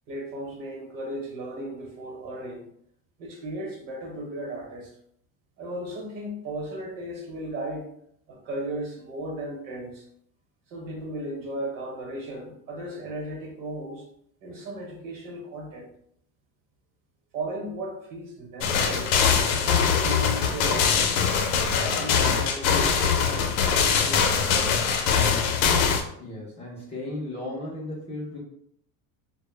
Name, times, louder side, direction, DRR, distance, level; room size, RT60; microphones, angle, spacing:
voice 1, 0.1-2.6 3.2-4.9 5.6-7.9 8.3-10.0 10.7-14.0 14.4-15.9 17.3-19.1 19.4-21.0 21.7-24.8, right 1 dB, 50° right, 0 dB, 0.9 m, -36 dB
sound 1, 18.6-26.0, left 6 dB, 90° left, 0.6 m, -22 dB
voice 2, 26.2-28.4, left 1 dB, 15° left, -6 dB, 0.3 m, -35 dB
2.1 x 2.0 x 3.1 m, 0.70 s
cardioid pair, 150°, 41 cm